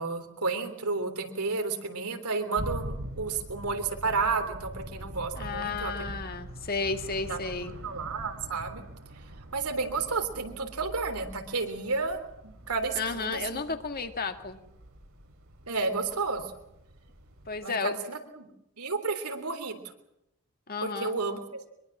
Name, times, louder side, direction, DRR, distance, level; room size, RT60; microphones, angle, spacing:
voice 1, 0.0-6.1 7.3-7.4 7.8-8.8 9.5-12.2 12.7-13.6 15.7-16.4 17.6-18.5 18.8-19.8 20.8-21.6, right 4 dB, 90° right, 6 dB, 3.4 m, -31 dB
sound 1, 2.6-17.6, right 1 dB, 65° right, 2.7 m, -43 dB
voice 2, 5.4-7.7 13.0-14.6 17.5-17.9 20.7-21.2, left 4 dB, 40° left, 7 dB, 1.8 m, -32 dB
24.0 x 22.0 x 7.4 m, 0.85 s
head